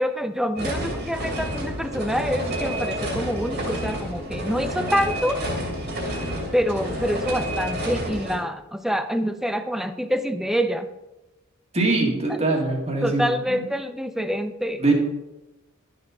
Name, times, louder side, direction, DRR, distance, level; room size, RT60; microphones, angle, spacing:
voice 1, 0.0-5.4 6.5-10.9 13.0-14.9, equal, ahead, 10 dB, 0.5 m, -26 dB
sound 1, 0.6-8.4, equal, 50° right, 2.5 m, -29 dB
voice 2, 11.7-13.6 14.2-14.3 14.8-14.9, right 3 dB, 30° right, 0 dB, 2.0 m, -23 dB
12.0 x 6.8 x 4.2 m, 1.0 s
head